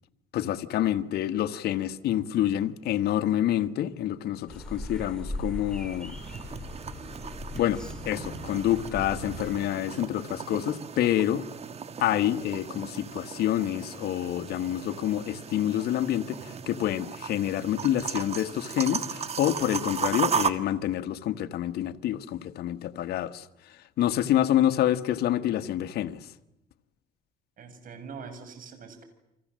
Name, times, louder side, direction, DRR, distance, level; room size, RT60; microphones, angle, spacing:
voice 1, 0.3-6.2 7.5-7.8 8.0-11.4 12.0-23.5 24.0-26.2, left 12 dB, 70° left, 1.5 m, -27 dB
sound 1, 4.5-9.6, left 1 dB, 5° left, 4.8 m, -39 dB
sound 2, 5.7-20.5, right 6 dB, 40° right, 1.7 m, -36 dB
voice 2, 27.6-29.0, right 5 dB, 55° right, 6.9 m, -43 dB
30.0 x 25.5 x 7.7 m
cardioid pair, 110°, 17 cm